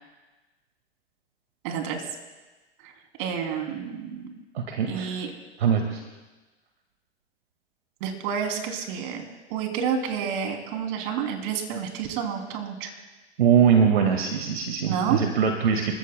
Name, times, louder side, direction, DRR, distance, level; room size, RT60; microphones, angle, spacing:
voice 1, 1.6-2.0 2.8-2.9 3.2-4.4 4.9-5.4 8.0-9.2 9.5-12.9 14.9-15.2, right 7 dB, 55° right, 4 dB, 3.0 m, -29 dB
voice 2, 4.5-5.1 5.6-6.0 13.4-15.9, right 7 dB, 70° right, 3 dB, 1.9 m, -22 dB
29.5 x 14.5 x 2.2 m, 1.2 s
hypercardioid pair, 105°, 32 cm